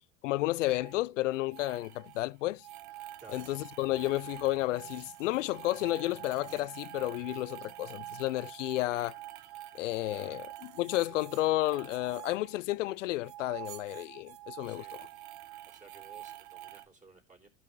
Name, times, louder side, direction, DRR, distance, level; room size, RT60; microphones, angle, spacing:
voice 1, 0.2-2.6 3.3-9.2 9.7-14.8, left 17 dB, 85° left, 0.5 m, -32 dB
sound 1, 0.7-1.0 1.3-2.2 2.6-13.0 13.2-16.9, right 14 dB, 60° right, 1.0 m, -47 dB
voice 2, 10.1-10.4 14.6-15.0 15.7-17.5, right 4 dB, 20° right, 3.6 m, -55 dB
15.0 x 5.6 x 3.1 m
hypercardioid pair, 85°, 36 cm